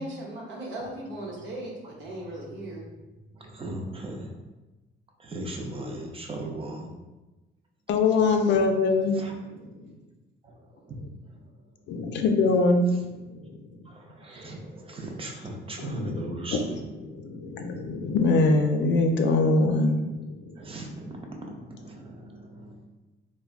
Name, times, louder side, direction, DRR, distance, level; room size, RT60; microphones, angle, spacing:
voice 1, 0.0-2.8, right 1 dB, 70° right, -2 dB, 0.9 m, -37 dB
voice 2, 3.3-4.4 5.2-6.9 9.1-9.3 10.4-11.6 13.8-16.8 20.6-22.9, right 1 dB, 30° right, 1 dB, 0.5 m, -38 dB
voice 3, 7.9-9.2 9.5-9.9 11.9-13.7 15.8-16.2 16.5-16.6 17.0-20.6, left 3 dB, 65° left, 5 dB, 0.4 m, -24 dB
3.3 x 2.1 x 2.4 m, 1.1 s
cardioid pair, 90°, 20 cm